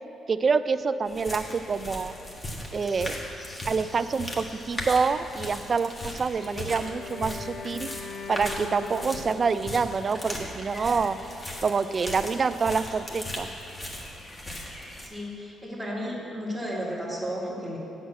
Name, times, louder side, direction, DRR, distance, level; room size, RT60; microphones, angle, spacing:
voice 1, 0.3-2.1 2.7-3.2 3.7-7.9 8.3-11.2 11.6-13.5, right 5 dB, 40° right, 13 dB, 0.4 m, -26 dB
sound 1, 1.1-15.1, left 1 dB, 25° left, 1.5 m, -38 dB
Wind instrument woodwind instrument, 6.4-9.9, left 5 dB, 55° left, 0.6 m, -41 dB
voice 2, 15.0-17.8, equal, 5° left, -10 dB, 2.1 m, -33 dB
8.1 x 6.1 x 7.6 m, 2.9 s
cardioid pair, 90°, 0 cm